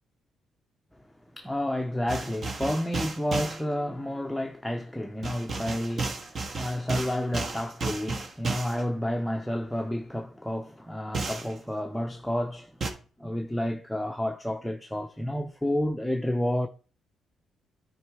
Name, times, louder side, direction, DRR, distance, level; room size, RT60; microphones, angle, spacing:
voice 1, 1.3-12.8 13.2-16.7, left 1 dB, 5° left, 0.7 m, -30 dB
sound 1, 2.1-3.6 5.2-8.8 11.1-11.5 12.8-12.9, right 3 dB, 45° right, 1.5 m, -33 dB
9.6 x 4.6 x 4.8 m
cardioid pair, 90°, 0 cm